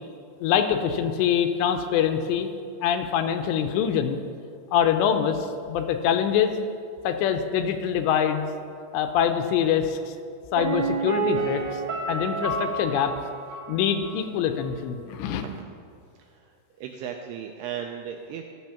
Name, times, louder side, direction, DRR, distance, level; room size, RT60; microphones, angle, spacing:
voice 1, 0.4-2.5 2.8-4.2 4.7-6.6 7.0-8.5 8.9-10.0 10.5-11.8 12.1-13.1 13.7-15.4, left 8 dB, 80° left, 7 dB, 2.8 m, -24 dB
Piano, 10.6-14.3 14.6-14.7, right 3 dB, 60° right, 1.1 m, -29 dB
voice 2, 16.2-18.4, right 8 dB, 85° right, 3 dB, 2.3 m, -36 dB
14.0 x 7.5 x 5.7 m, 2.4 s
omnidirectional pair, 5.2 m